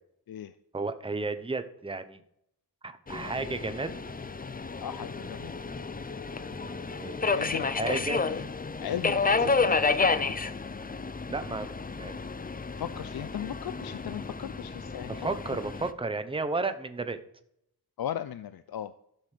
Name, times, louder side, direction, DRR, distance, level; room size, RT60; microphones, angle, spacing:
voice 1, 0.7-2.2 2.8-4.0 6.5-7.2 7.8-8.2 9.4-9.5 11.3-11.7 12.0-12.2 15.1-17.2, right 3 dB, 15° right, 9 dB, 0.8 m, -33 dB
Subway metro underground, 3.1-15.9, left 4 dB, 25° left, 0.5 m, -31 dB
voice 2, 4.8-5.5 7.3-8.5 8.8-10.3 12.8-15.1 18.0-18.9, left 10 dB, 75° left, 13 dB, 0.5 m, -37 dB
12.0 x 6.3 x 5.0 m, 0.76 s
wide cardioid pair, 75°, 37 cm